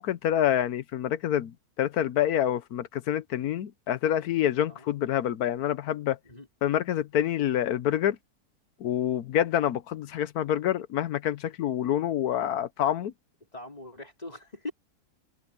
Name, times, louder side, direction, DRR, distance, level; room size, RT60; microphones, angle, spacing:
voice 1, 0.0-1.5 1.8-6.2 6.6-8.2 8.8-13.1, left 11 dB, 85° left, 1.3 m, -27 dB
voice 2, 13.5-14.7, left 2 dB, 25° left, 4.1 m, -41 dB
omnidirectional pair, 1.6 m